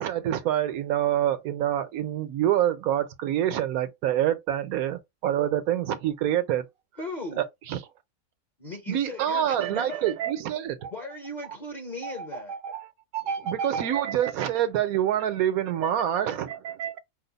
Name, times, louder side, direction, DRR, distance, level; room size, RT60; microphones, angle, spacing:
voice 1, 0.0-6.6 7.4-7.8 8.9-10.7 13.5-16.5, right 11 dB, 85° right, 1.2 m, -26 dB
voice 2, 7.0-7.4 8.6-10.1 10.9-12.5, left 1 dB, 40° left, 0.7 m, -37 dB
voice 3, 9.2-10.3 10.8-10.9 12.0-14.3 15.8-17.0, right 7 dB, 70° right, 0.9 m, -35 dB
4.7 x 2.1 x 3.9 m
omnidirectional pair, 1.5 m